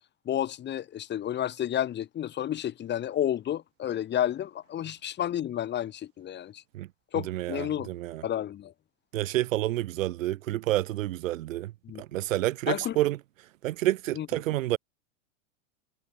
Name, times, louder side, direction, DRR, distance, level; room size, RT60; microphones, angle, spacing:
voice 1, 0.2-6.6 7.1-7.9 8.2-8.7 11.8-12.0 12.7-13.0 14.1-14.3, left 11 dB, 30° left, 2.8 m, -31 dB
voice 2, 7.1-8.2 9.1-11.7 12.0-13.2 13.6-14.8, right 15 dB, 85° right, 0.9 m, -29 dB
supercardioid pair, 130°, 38 cm